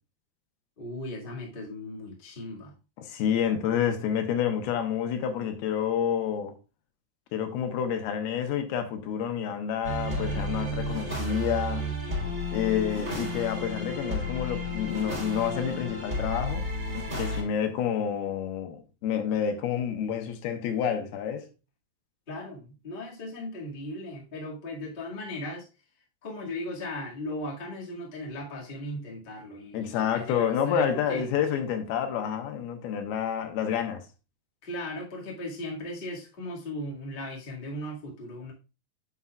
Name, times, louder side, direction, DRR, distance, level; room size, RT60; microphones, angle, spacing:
voice 1, 0.8-2.7 22.3-25.6 26.2-31.3 34.6-38.5, left 1 dB, 50° left, 0.6 m, -37 dB
voice 2, 3.0-6.5 7.3-11.9 12.5-16.7 17.2-21.5 29.7-34.0, left 8 dB, 75° left, 2.7 m, -29 dB
sound 1, 9.8-17.4, equal, 15° right, 3.7 m, -32 dB
9.6 x 7.1 x 2.4 m
omnidirectional pair, 4.8 m